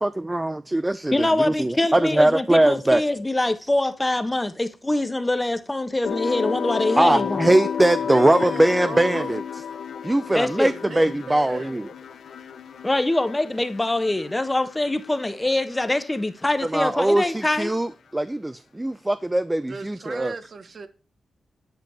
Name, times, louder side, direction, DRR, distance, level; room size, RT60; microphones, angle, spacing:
voice 1, 0.0-3.0 7.0-9.4 10.0-11.8 16.6-20.3, right 1 dB, 15° right, 0.6 m, -21 dB
voice 2, 1.1-7.4 10.3-10.7 12.8-17.7, left 2 dB, 15° left, 1.3 m, -24 dB
sound 1, 6.0-15.2 15.5-16.1, left 7 dB, 80° left, 1.2 m, -32 dB
voice 3, 8.1-9.4 10.3-11.8 19.7-20.9, right 4 dB, 55° right, 1.3 m, -36 dB
10.5 x 5.1 x 7.1 m
cardioid pair, 75°, 0 cm